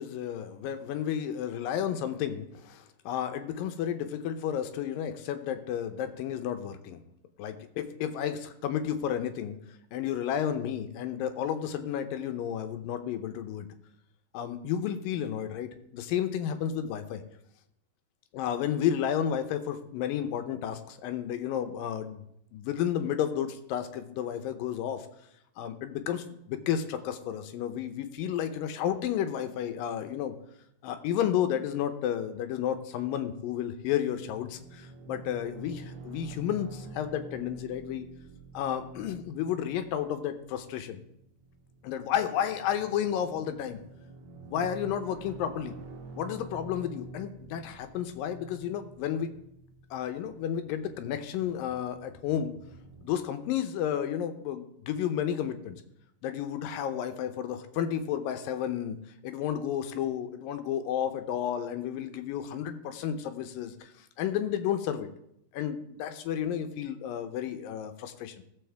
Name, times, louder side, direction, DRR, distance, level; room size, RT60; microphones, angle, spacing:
voice 1, 0.0-7.0 7.4-9.6 9.9-13.7 14.3-17.2 18.3-22.2 22.5-25.1 25.6-30.4 30.8-38.1 38.5-41.0 41.8-43.8 44.5-45.7 46.2-49.3 49.9-52.5 53.0-55.8 56.2-59.0 59.2-65.1 65.5-68.4, left 9 dB, 85° left, 8 dB, 2.5 m, -32 dB
sound 1, 34.1-53.1, right 2 dB, 75° right, 3.1 m, -48 dB
17.0 x 7.1 x 3.4 m, 0.78 s
omnidirectional pair, 4.0 m